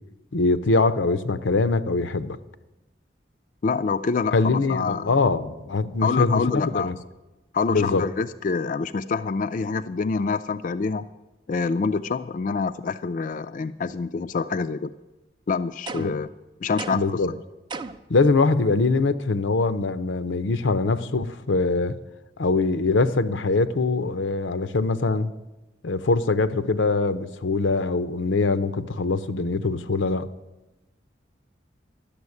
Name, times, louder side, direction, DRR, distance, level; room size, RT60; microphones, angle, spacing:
voice 1, 0.3-2.4 4.3-6.9 7.7-8.0 16.0-16.1 16.9-17.3 18.1-21.9 22.4-25.3 25.8-30.3, left 3 dB, 90° left, 13 dB, 0.7 m, -23 dB
voice 2, 3.6-5.2 6.0-6.9 7.5-11.1 11.5-14.9 15.5-16.3 16.6-17.4, left 4 dB, 45° left, 10 dB, 0.3 m, -26 dB
sound 1, 15.9-16.3 16.8-17.2 17.7-18.1, right 4 dB, 25° right, 0.5 m, -35 dB
12.0 x 7.1 x 9.6 m, 1.0 s
head